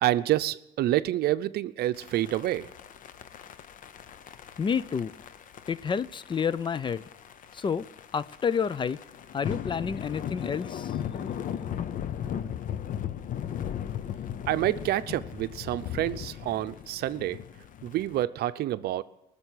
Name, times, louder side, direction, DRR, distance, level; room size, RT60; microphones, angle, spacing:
voice 1, 0.0-2.7 14.5-17.4 17.8-19.0, right 14 dB, 70° right, 0.6 m, -28 dB
sound 1, 1.9-18.2, left 9 dB, 50° left, 0.8 m, -37 dB
voice 2, 4.6-5.1 5.7-7.0 7.5-7.9 8.1-9.0 9.3-11.0, left 6 dB, 30° left, 0.4 m, -29 dB
19.0 x 6.9 x 10.0 m
cardioid pair, 110°, 17 cm